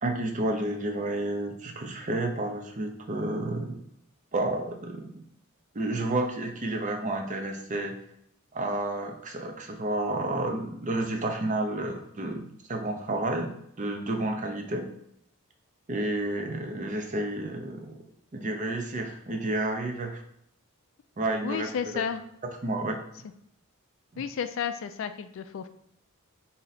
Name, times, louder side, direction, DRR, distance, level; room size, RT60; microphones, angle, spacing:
voice 1, 0.0-3.7 4.3-5.2 5.7-8.0 8.5-12.4 12.7-13.5 13.8-14.9 15.9-18.0 18.3-20.2 21.2-22.1 22.6-23.0 24.1-24.2, right 2 dB, 35° right, 4 dB, 0.6 m, -30 dB
voice 2, 21.4-22.2 24.2-25.7, left 7 dB, 60° left, 10 dB, 0.3 m, -32 dB
4.3 x 2.8 x 4.0 m, 0.72 s
head